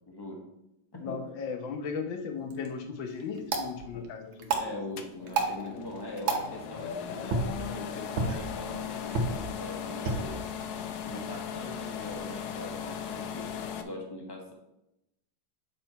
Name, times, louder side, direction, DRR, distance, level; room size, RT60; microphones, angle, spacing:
voice 1, 0.1-0.5 0.9-1.2 3.9-4.1 4.6-10.4 11.0-14.5, left 1 dB, 15° left, 0 dB, 0.9 m, -42 dB
voice 2, 1.0-4.7 10.1-10.2, left 5 dB, 70° left, 5 dB, 1.5 m, -37 dB
sound 1, 2.3-12.4, right 3 dB, 70° right, 1.7 m, -35 dB
sound 2, 5.0-13.8, left 8 dB, 85° left, 0.8 m, -38 dB
7.9 x 4.3 x 4.4 m, 0.86 s
omnidirectional pair, 2.3 m